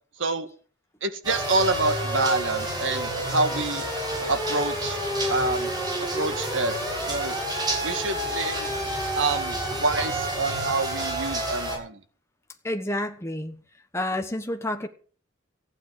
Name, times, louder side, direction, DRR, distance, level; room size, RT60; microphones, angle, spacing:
voice 1, 1.0-3.8 4.3-5.0 5.3-5.7 6.0-6.7 7.1-7.4 7.8-8.7 9.1-12.0, right 3 dB, 80° right, 9 dB, 1.8 m, -27 dB
sound 1, 1.2-11.8, right 1 dB, 20° right, 7.3 m, -29 dB
voice 2, 12.6-13.6 13.9-14.9, left 1 dB, 15° left, 4 dB, 1.3 m, -29 dB
15.0 x 9.0 x 7.5 m, 0.42 s
head